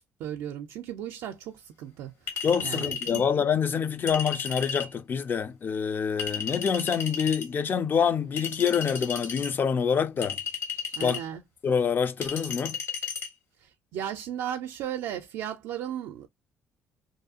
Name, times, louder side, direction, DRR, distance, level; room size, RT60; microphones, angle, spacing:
voice 1, 0.0-3.3 10.9-11.4 13.6-16.3, right 10 dB, 80° right, 0.4 m, -36 dB
Chink clink, 2.3-3.3 4.1-4.9 6.2-7.5 8.4-9.5 10.2-11.3 12.2-13.3, left 6 dB, 65° left, 1.4 m, -34 dB
voice 2, 2.4-10.4 11.0-11.2 11.6-12.8, left 7 dB, 40° left, 0.4 m, -26 dB
2.6 x 2.3 x 2.6 m
cardioid pair, 90°, 5 cm